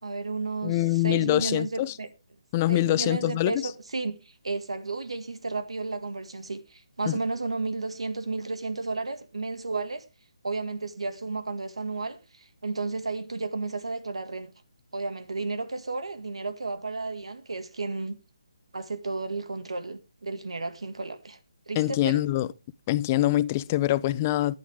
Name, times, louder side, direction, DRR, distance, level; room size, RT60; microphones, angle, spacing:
voice 1, 0.0-2.1 2.7-10.0 10.4-14.5 14.9-18.2 18.7-21.4 21.7-22.2, right 3 dB, 85° right, 2.0 m, -33 dB
voice 2, 0.6-2.0 2.5-3.7 7.1-7.2 21.8-22.5 22.9-24.6, left 15 dB, 20° left, 0.5 m, -24 dB
12.5 x 10.5 x 3.5 m
hypercardioid pair, 160°, 3 cm